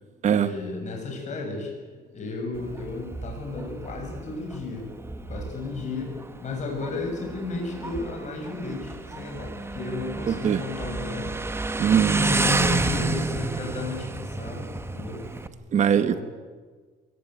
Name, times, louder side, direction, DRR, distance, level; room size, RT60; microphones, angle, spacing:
voice 1, 0.3-1.7 2.1-4.9 5.3-6.1 6.4-11.3 12.1-15.2 15.8-16.2, left 3 dB, 45° left, 2 dB, 7.4 m, -34 dB
Motorcycle, 2.5-15.5, right 3 dB, 15° right, 1.5 m, -30 dB
voice 2, 10.3-10.6 11.8-12.2 15.7-16.1, right 8 dB, 45° right, 11 dB, 1.1 m, -20 dB
22.5 x 18.5 x 9.3 m, 1.4 s
cardioid pair, 110°, 17 cm